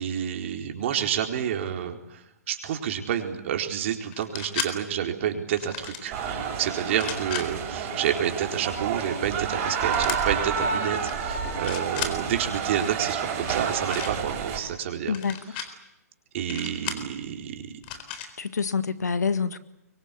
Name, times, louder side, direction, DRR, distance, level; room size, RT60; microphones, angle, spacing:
voice 1, 0.0-2.2 2.5-15.2 15.5-15.6 16.3-17.7, right 9 dB, 50° right, 4 dB, 4.3 m, -29 dB
sound 1, 4.1-4.7 5.5-6.1 6.9-7.5 9.9-10.2 10.9-11.1 11.5-12.1 13.4-14.1 15.1-15.7 16.5-17.1 17.8-18.3, left 8 dB, 40° left, 4.0 m, -34 dB
sound 2, 6.1-14.6, right 6 dB, 30° right, 6.9 m, -29 dB
voice 2, 15.1-15.4 18.4-19.6, left 5 dB, 85° left, 12 dB, 1.8 m, -26 dB
25.0 x 23.5 x 8.5 m, 0.86 s
hypercardioid pair, 140°, 9 cm